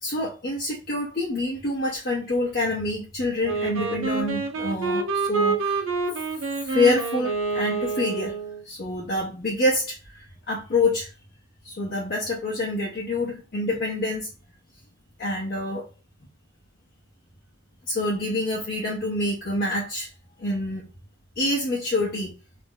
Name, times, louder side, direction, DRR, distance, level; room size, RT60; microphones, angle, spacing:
voice 1, 0.0-5.9 6.6-8.3 8.6-11.1 11.6-14.3 15.2-15.9 17.9-20.1 20.4-20.9 21.4-22.3, left 2 dB, 50° left, -4 dB, 0.8 m, -26 dB
Wind instrument woodwind instrument, 3.4-8.6, right 4 dB, 90° right, 0.6 m, -27 dB
2.5 x 2.1 x 3.6 m, 0.33 s
head